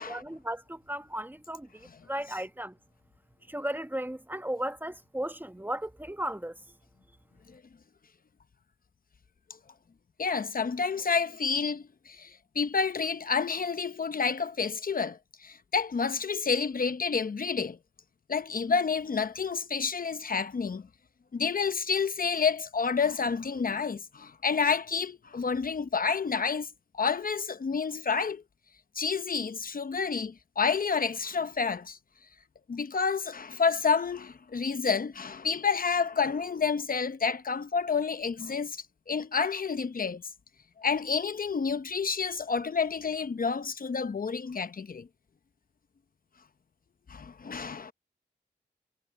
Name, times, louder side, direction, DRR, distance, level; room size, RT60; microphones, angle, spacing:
voice 1, 0.0-2.8 3.5-6.5, right 1 dB, 10° right, 1.1 m, -35 dB
voice 2, 10.2-17.8 18.3-20.8 21.3-26.7 26.9-28.4 29.0-32.0 32.7-38.8 39.1-40.2 40.8-45.1 47.1-47.9, left 5 dB, 55° left, 0.9 m, -29 dB
cardioid pair, 65°, 18 cm